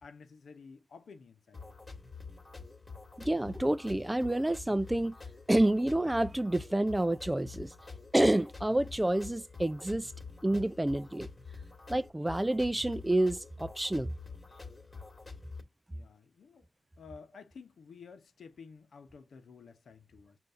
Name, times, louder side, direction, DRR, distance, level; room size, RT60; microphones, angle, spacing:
voice 1, 0.0-1.6 10.2-10.3 15.9-16.7 17.0-20.4, left 5 dB, 80° left, 0.8 m, -52 dB
sound 1, 1.5-15.6, left 4 dB, 35° left, 1.5 m, -47 dB
voice 2, 3.2-5.1 5.5-7.7 8.1-10.1 10.4-11.3 11.9-14.1, right 1 dB, 15° right, 0.4 m, -28 dB
5.3 x 2.5 x 3.5 m
cardioid pair, 50°, 0 cm